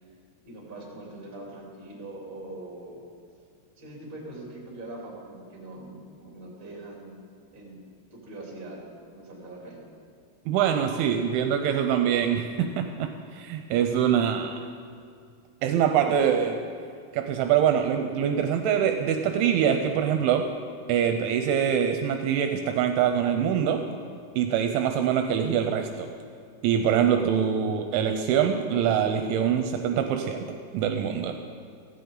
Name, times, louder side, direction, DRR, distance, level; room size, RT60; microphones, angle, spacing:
voice 1, 0.4-3.0 3.8-7.2 7.5-7.8 8.1-8.8 9.1-9.8, right 2 dB, 15° right, -3 dB, 2.3 m, -42 dB
voice 2, 10.5-14.6 15.6-16.6 17.1-20.5 20.9-23.8 24.4-26.1 26.6-31.3, right 8 dB, 80° right, 6 dB, 3.0 m, -24 dB
16.5 x 15.5 x 3.9 m, 2.3 s
omnidirectional pair, 5.7 m